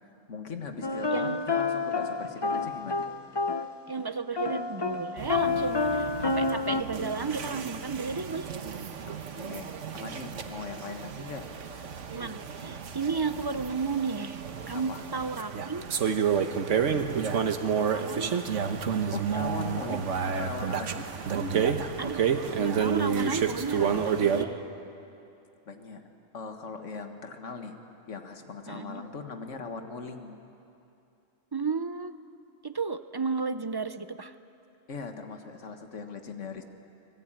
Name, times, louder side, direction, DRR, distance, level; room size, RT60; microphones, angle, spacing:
voice 1, 0.3-3.1 5.2-5.7 9.1-12.0 14.7-15.0 19.1-21.0 25.7-27.8 28.1-30.3 34.9-36.6, left 4 dB, 70° left, 6 dB, 1.9 m, -40 dB
sound 1, 0.8-3.8 4.4-6.8, left 4 dB, 25° left, 0.7 m, -29 dB
voice 2, 1.1-1.4 3.9-8.5 12.1-14.4 14.7-15.9 17.9-18.3 19.3-19.4 22.0-22.2 22.6-24.6 28.7-29.0 31.5-32.1 32.6-34.3, right 4 dB, 35° right, 11 dB, 0.4 m, -33 dB
sound 2, 5.2-24.4, right 7 dB, 70° right, 1.4 m, -30 dB
25.5 x 20.0 x 8.9 m, 2.7 s
omnidirectional pair, 1.3 m